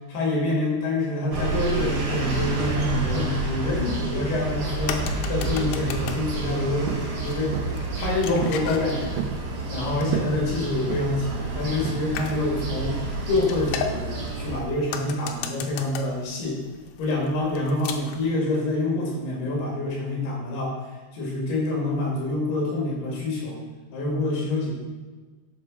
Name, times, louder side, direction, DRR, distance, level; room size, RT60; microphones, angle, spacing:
voice 1, 0.1-5.0 5.3-7.6 8.0-9.2 9.7-13.0 13.3-16.6 17.0-20.8 21.1-23.6 23.9-24.7, left 2 dB, 60° left, -3 dB, 4.0 m, -26 dB
sound 1, 1.3-14.6, right 3 dB, 60° right, 1.4 m, -29 dB
sound 2, 4.4-18.3, left 7 dB, 85° left, 2.3 m, -38 dB
sound 3, 6.9-7.1 7.5-7.8 8.4-8.7 9.0-9.4 10.1-10.4 10.9-11.3 11.9-12.3, right 7 dB, 75° right, 2.6 m, -31 dB
12.5 x 5.4 x 5.5 m, 1.3 s
omnidirectional pair, 5.5 m